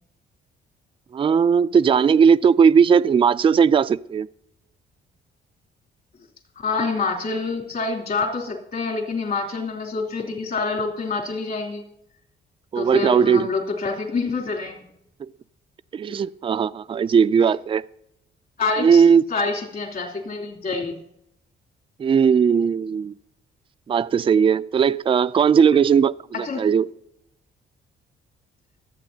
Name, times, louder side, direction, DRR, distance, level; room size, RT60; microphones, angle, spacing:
voice 1, 1.1-4.3 12.7-13.5 15.2-15.3 15.9-17.8 18.8-19.3 22.0-23.1 23.9-26.2 26.6-26.9, right 6 dB, 25° right, 0.4 m, -17 dB
voice 2, 6.6-11.8 12.7-14.9 16.1-16.2 18.6-19.0 19.3-21.0 26.4-26.6, left 4 dB, 50° left, 3.3 m, -26 dB
25.0 x 8.4 x 2.8 m
cardioid pair, 90°, 20 cm